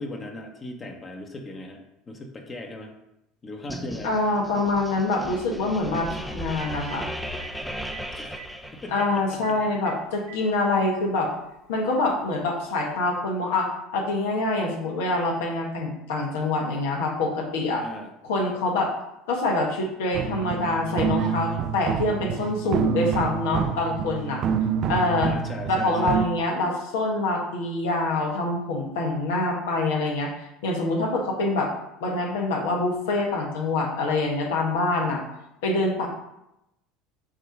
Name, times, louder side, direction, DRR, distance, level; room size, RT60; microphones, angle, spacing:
voice 1, 0.0-2.9 3.4-4.1 8.1-8.4 8.7-9.7 17.8-18.1 25.2-26.3, left 2 dB, 30° left, 2 dB, 1.1 m, -38 dB
sound 1, 3.7-9.3, equal, ahead, 0.5 m, -36 dB
Telephone, 3.8-3.9 6.0-6.1 6.5-7.0 7.4-7.5 7.9-8.0 8.3-8.5 9.0-9.1 9.4-9.5 9.8-10.4 11.4-11.5 13.0-13.1, right 13 dB, 80° right, 1.1 m, -44 dB
voice 2, 4.0-7.1 8.9-11.3 11.7-17.8 18.2-18.9 19.3-24.4 24.9-25.3 25.7-31.7 32.0-35.2 35.6-36.1, left 2 dB, 80° left, 0 dB, 1.4 m, -25 dB
sound 2, 20.1-26.3, right 8 dB, 55° right, 0.4 m, -27 dB
6.4 x 3.0 x 5.1 m, 0.86 s
supercardioid pair, 95°, 0 cm